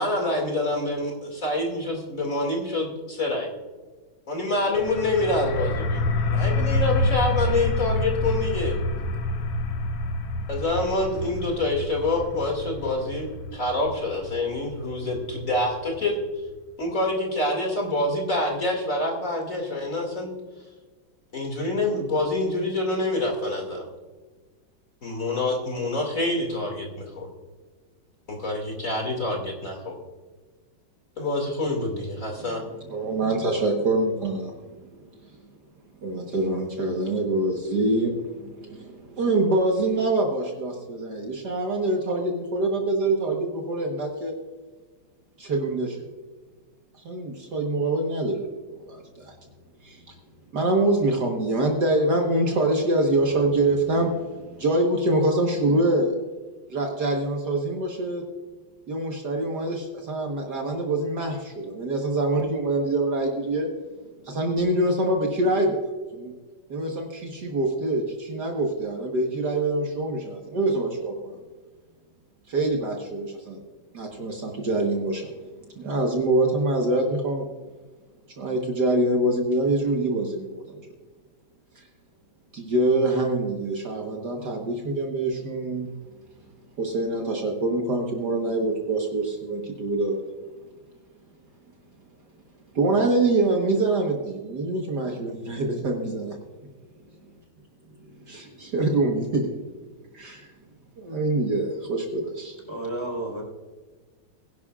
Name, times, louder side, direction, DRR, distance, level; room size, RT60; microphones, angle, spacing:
voice 1, 0.0-3.5 4.3-8.8 10.5-16.2 16.8-20.3 21.3-23.9 25.0-27.3 28.3-29.9 31.2-32.6, left 2 dB, 40° left, 0 dB, 2.7 m, -26 dB
sound 1, 4.7-16.2, left 2 dB, 75° left, 1.7 m, -28 dB
voice 2, 32.9-34.5 36.0-44.4 45.4-46.0 47.0-48.6 48.9-49.3 49.8-50.0 50.5-56.1 56.7-58.2 58.9-63.7 64.2-65.8 66.1-66.3 66.7-71.4 72.5-73.6 73.9-75.3 75.8-77.5 78.4-80.6 82.5-85.9 86.8-90.2 92.7-96.3 98.3-99.5 100.1-100.5 101.0-102.6, right 2 dB, 55° right, 1 dB, 1.8 m, -25 dB
voice 3, 102.7-103.4, right 1 dB, 10° right, -2 dB, 4.0 m, -31 dB
21.5 x 11.0 x 2.4 m, 1.4 s
omnidirectional pair, 2.2 m